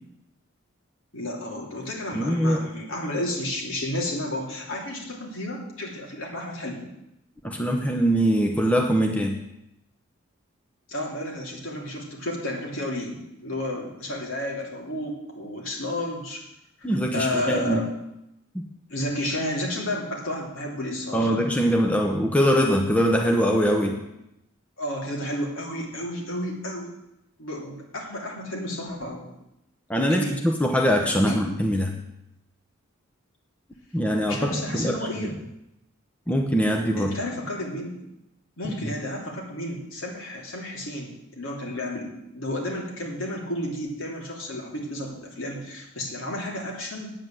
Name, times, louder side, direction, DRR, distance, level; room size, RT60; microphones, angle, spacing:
voice 1, 1.1-6.9 10.9-16.4 16.8-17.9 18.9-21.4 23.7-23.9 24.8-26.9 27.4-29.3 30.1-30.4 31.2-31.6 34.3-35.3 37.0-38.0 38.6-42.1 42.3-47.1, left 1 dB, 65° left, -1 dB, 3.0 m, -32 dB
voice 2, 2.1-2.6 7.4-9.4 16.8-17.8 21.1-24.0 29.9-32.0 33.9-35.4 36.3-37.1 38.6-38.9, equal, 5° left, 2 dB, 0.9 m, -23 dB
8.9 x 8.8 x 7.7 m, 0.86 s
head